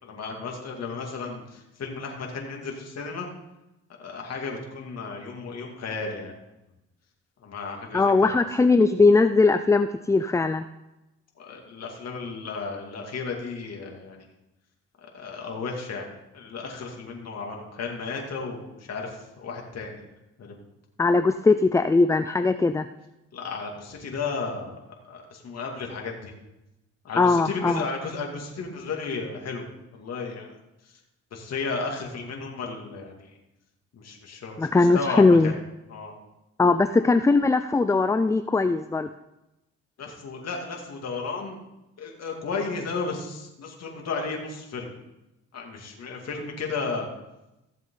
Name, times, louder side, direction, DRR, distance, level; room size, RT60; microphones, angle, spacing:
voice 1, 0.0-3.3 4.0-6.4 7.4-8.4 11.4-14.2 15.0-20.1 20.4-20.5 23.3-24.8 25.0-26.3 27.0-29.6 29.9-30.5 31.3-33.3 33.9-34.7 34.9-35.5 35.9-36.1 40.0-41.6 42.0-44.9 45.5-47.1, left 4 dB, 55° left, 0 dB, 2.6 m, -34 dB
voice 2, 7.9-10.6 21.0-22.9 27.2-27.8 34.6-35.5 36.6-39.1, left 3 dB, 10° left, 10 dB, 0.4 m, -20 dB
15.5 x 7.4 x 3.9 m, 0.94 s
cardioid pair, 90°, 30 cm